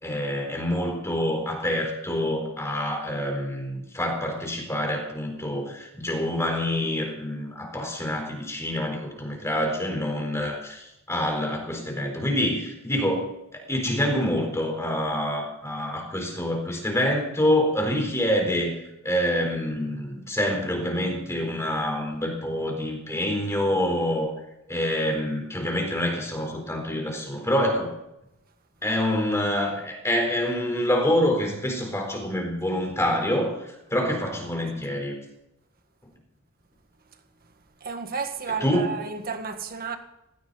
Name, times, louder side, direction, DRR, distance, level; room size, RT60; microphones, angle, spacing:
voice 1, 0.0-18.7 19.0-24.3 24.7-27.9 28.8-35.2 38.6-38.9, left 1 dB, 15° left, 4.3 m, -26 dB
voice 2, 37.8-40.0, right 5 dB, 45° right, 1.8 m, -32 dB
18.0 x 16.5 x 4.2 m
head